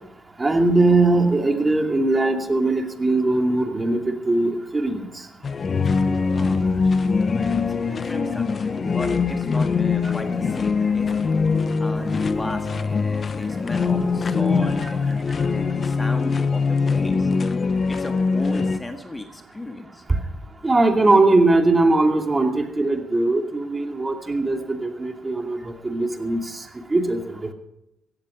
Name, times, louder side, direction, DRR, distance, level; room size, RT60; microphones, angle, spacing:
voice 1, 0.4-5.3 13.4-13.5 14.6-14.9 15.4-15.5 20.1-20.2 20.6-27.5, right 2 dB, 20° right, 4 dB, 2.5 m, -21 dB
sound 1, 5.4-18.8, left 4 dB, 40° left, 1.0 m, -22 dB
voice 2, 6.3-6.9 7.3-11.2 11.8-17.3 17.9-20.0, left 2 dB, 15° left, 5 dB, 1.7 m, -35 dB
16.5 x 14.0 x 5.1 m, 0.84 s
cardioid pair, 90°, 0 cm